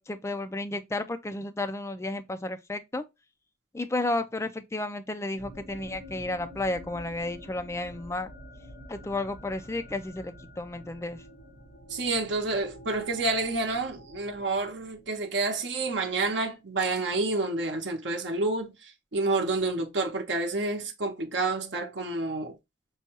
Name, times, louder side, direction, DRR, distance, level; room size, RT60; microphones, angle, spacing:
voice 1, 0.0-3.0 3.7-8.3 8.9-11.2, left 2 dB, 15° left, 0.3 m, -32 dB
sound 1, 5.4-15.2, equal, 65° left, 1.4 m, -48 dB
voice 2, 11.9-22.6, right 3 dB, 65° right, 0.8 m, -29 dB
5.4 x 2.2 x 2.9 m
head